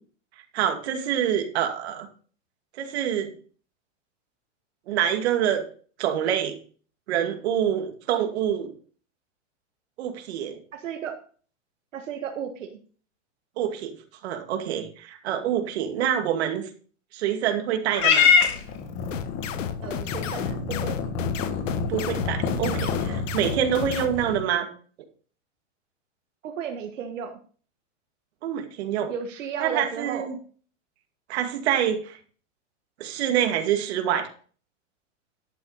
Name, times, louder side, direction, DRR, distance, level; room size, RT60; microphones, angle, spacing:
voice 1, 0.5-2.1 2.8-3.3 4.9-5.6 6.0-6.6 7.1-8.7 10.0-10.6 13.6-13.9 14.2-16.7 17.1-18.3 21.9-24.7 28.4-29.1 29.6-30.3 31.3-32.2 33.0-34.3, right 9 dB, 60° right, 5 dB, 2.3 m, -26 dB
voice 2, 10.7-11.2 11.9-12.8 19.8-20.9 26.4-27.4 29.1-30.4, right 7 dB, 85° right, 5 dB, 1.7 m, -34 dB
Purr / Meow, 17.9-24.4, left 6 dB, 35° left, 2.2 m, -26 dB
sound 1, 19.1-24.1, left 9 dB, 80° left, 1.4 m, -33 dB
11.5 x 8.3 x 4.1 m, 0.43 s
supercardioid pair, 155°, 37 cm